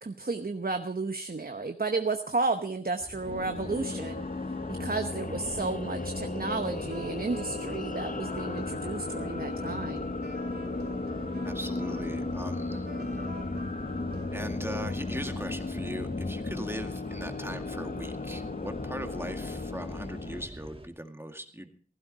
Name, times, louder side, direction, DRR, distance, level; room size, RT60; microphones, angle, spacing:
voice 1, 0.0-4.2 4.7-10.0, right 3 dB, 65° right, 6 dB, 1.0 m, -32 dB
sound 1, 3.0-20.9, right 1 dB, 35° right, 1.4 m, -46 dB
sound 2, 3.2-20.5, left 3 dB, 55° left, 0.8 m, -35 dB
sound 3, 6.2-15.0, right 2 dB, 90° right, 2.3 m, -47 dB
voice 2, 11.4-12.9 14.3-21.7, equal, 15° right, 5 dB, 2.0 m, -40 dB
16.0 x 15.5 x 4.1 m, 0.42 s
wide cardioid pair, 45°, 16 cm